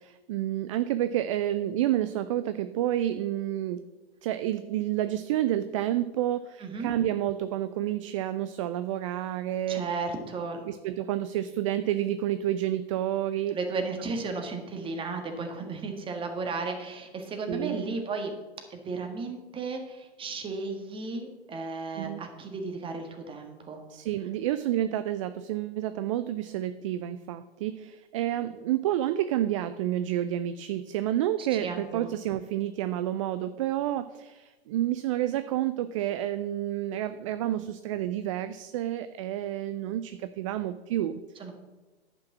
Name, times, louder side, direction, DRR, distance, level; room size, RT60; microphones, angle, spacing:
voice 1, 0.0-3.8 4.2-9.8 10.6-13.6 17.5-17.9 22.0-22.2 23.9-41.2, right 12 dB, 35° right, 12 dB, 0.4 m, -29 dB
voice 2, 6.6-6.9 9.7-10.6 13.5-18.3 18.7-23.8 31.4-32.1 41.4-41.5, right 4 dB, 15° right, 4 dB, 1.6 m, -34 dB
10.5 x 6.0 x 7.2 m, 1.2 s
figure-of-eight pair, 110°, 31 cm